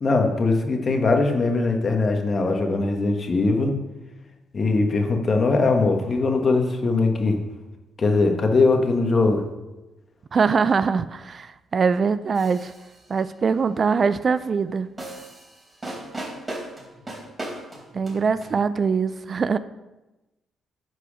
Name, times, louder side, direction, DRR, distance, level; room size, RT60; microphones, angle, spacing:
voice 1, 0.0-3.8 4.5-7.3 8.0-9.4, left 3 dB, 40° left, 4 dB, 1.5 m, -21 dB
voice 2, 10.3-12.7 13.1-14.9 17.9-19.6, right 5 dB, 40° right, 14 dB, 0.4 m, -22 dB
sound 1, 12.3-13.1 15.0-18.6, right 1 dB, 20° right, 3.5 m, -37 dB
10.0 x 4.8 x 6.2 m, 1.0 s
cardioid pair, 90°, 0 cm